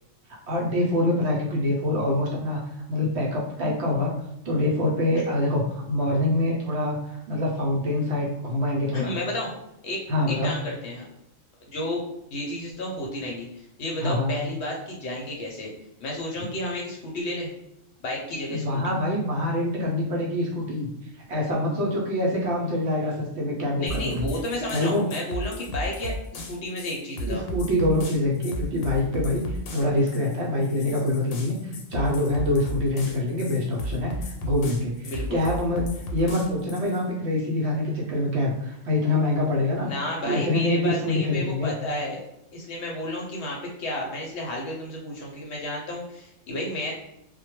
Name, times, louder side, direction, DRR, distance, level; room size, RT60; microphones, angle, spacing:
voice 1, 0.5-2.6 2.9-4.1 4.4-9.2 10.1-10.6 14.0-14.4 18.5-24.2 24.7-25.0 27.3-39.9 40.3-41.7, left 1 dB, 65° right, -2 dB, 0.8 m, -25 dB
voice 2, 8.9-9.5 9.8-10.0 10.3-11.0 11.7-12.0 12.3-15.7 16.0-17.5 18.0-18.8 23.8-27.4 35.1-35.4 39.9-42.2 42.5-46.9, left 1 dB, 65° left, -2 dB, 0.8 m, -32 dB
sound 1, 23.9-37.0, equal, 90° left, 1.0 m, -34 dB
2.2 x 2.1 x 2.9 m, 0.83 s
omnidirectional pair, 1.4 m